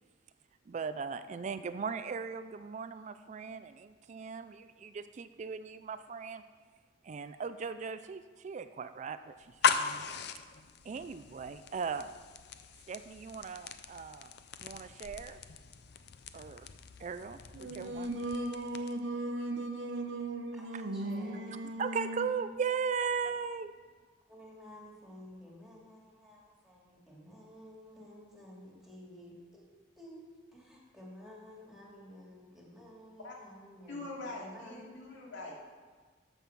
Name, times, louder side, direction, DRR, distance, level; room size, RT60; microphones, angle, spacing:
voice 1, 0.7-6.4 7.0-10.0 10.8-12.1 12.9-14.4 14.6-15.4 16.3-16.7 17.0-18.2 20.7-20.8 21.8-23.7, right 6 dB, 40° right, 11 dB, 0.3 m, -38 dB
sound 1, 9.4-19.1, left 6 dB, 60° left, 0.5 m, -38 dB
Singing, 17.5-22.4, right 1 dB, 80° right, 0.8 m, -37 dB
voice 2, 20.6-21.5 24.3-29.6 30.0-34.9, equal, ahead, -3 dB, 2.4 m, -52 dB
voice 3, 33.9-35.5, left 2 dB, 80° left, -3 dB, 2.6 m, -43 dB
14.0 x 5.5 x 5.9 m, 1.5 s
head